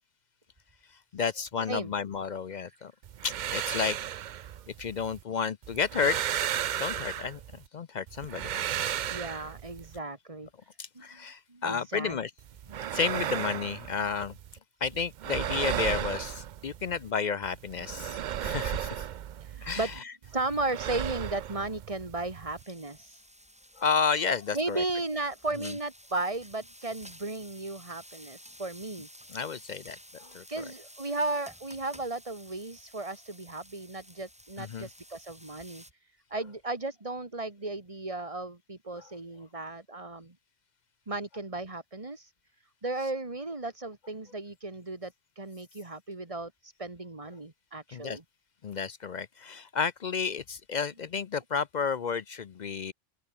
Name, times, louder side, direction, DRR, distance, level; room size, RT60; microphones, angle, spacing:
voice 1, 1.1-2.9 3.2-4.0 4.8-6.2 6.8-8.6 10.8-12.3 12.9-14.3 14.8-19.0 19.6-19.9 23.8-24.8 29.3-30.4 34.6-34.9 39.0-39.1 47.9-48.2 48.6-52.9, left 6 dB, 50° left, 0.6 m, -31 dB
sound 1, 3.0-5.2 5.6-7.7 8.1-10.0 12.4-14.6 14.8-17.1 17.4-20.0 20.2-22.6, right 10 dB, 60° right, 0.5 m, -35 dB
voice 2, 9.1-10.5 11.0-11.1 11.5-12.2 19.4-20.0 20.3-23.2 24.5-29.1 30.5-35.8 36.3-40.3 41.1-42.3 42.8-48.2, right 2 dB, 30° right, 2.2 m, -35 dB
sound 2, 22.6-35.9, equal, 5° right, 8.0 m, -52 dB
open air
omnidirectional pair, 1.2 m